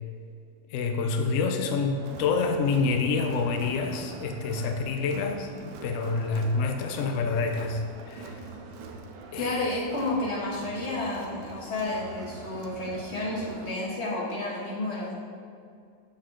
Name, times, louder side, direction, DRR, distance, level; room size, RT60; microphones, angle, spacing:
voice 1, 0.7-7.8 8.1-8.4 9.3-9.7, left 4 dB, 70° left, 4 dB, 0.7 m, -27 dB
Crowd, 2.0-13.7, right 3 dB, 70° right, 1.2 m, -43 dB
voice 2, 9.4-15.1, left 2 dB, 40° left, -5 dB, 1.4 m, -31 dB
6.3 x 5.6 x 3.8 m, 2.3 s
omnidirectional pair, 2.1 m